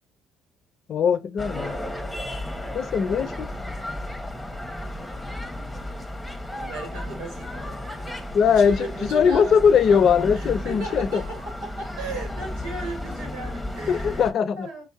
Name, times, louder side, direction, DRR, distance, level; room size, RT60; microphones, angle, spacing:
voice 1, 0.9-1.8 2.7-3.5 8.3-11.2 13.9-14.7, left 7 dB, 55° left, 0.6 m, -20 dB
sound 1, 1.4-14.3, left 1 dB, 5° left, 1.1 m, -34 dB
voice 2, 6.5-14.3 14.6-14.8, right 3 dB, 90° right, 2.7 m, -37 dB
5.2 x 2.7 x 3.5 m
supercardioid pair, 75°, 0 cm